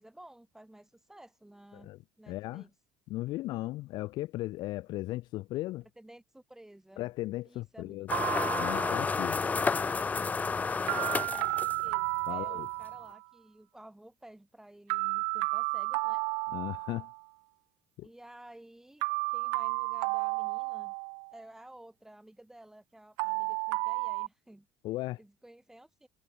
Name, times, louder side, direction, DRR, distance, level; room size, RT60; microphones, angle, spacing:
voice 1, 0.0-2.7 6.0-7.1 7.4-8.3 9.4-9.8 10.6-12.0 12.3-16.2 18.0-20.9 21.3-24.7 25.2-26.1, right 1 dB, 5° right, 4.2 m, -53 dB
voice 2, 2.3-2.6 3.1-5.9 7.0-8.1 8.6-9.4 12.3-12.7 16.5-17.1 18.0-18.1 24.8-25.2, left 17 dB, 65° left, 2.4 m, -36 dB
sound 1, 8.1-12.1, left 4 dB, 20° left, 0.4 m, -31 dB
sound 2, 8.1-9.3 10.9-13.2 14.9-17.2 19.0-21.4 23.2-24.3, right 40 dB or more, 80° right, 0.5 m, -32 dB
supercardioid pair, 90°, 8 cm